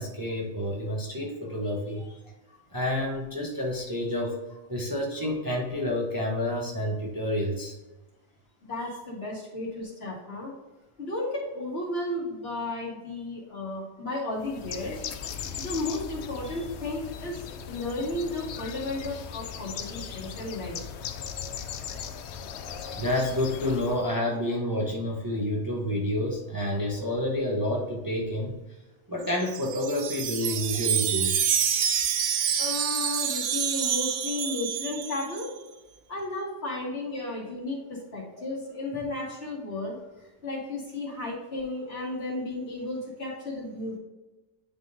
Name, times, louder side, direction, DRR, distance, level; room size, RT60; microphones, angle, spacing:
voice 1, 0.0-2.1 2.7-4.4 4.7-7.7 23.0-28.6 29.1-31.4, left 1 dB, 20° right, -3 dB, 0.9 m, -29 dB
voice 2, 8.6-10.5 11.0-15.0 15.6-17.4 17.7-20.8 32.6-35.5 36.1-40.0 40.4-44.0, left 2 dB, 50° left, -6 dB, 2.4 m, -33 dB
Bird, 14.4-24.0, left 7 dB, 70° left, 0.8 m, -38 dB
Wind chime, 29.3-35.5, right 8 dB, 80° right, 1.0 m, -27 dB
10.0 x 3.8 x 2.7 m, 1.1 s
omnidirectional pair, 1.3 m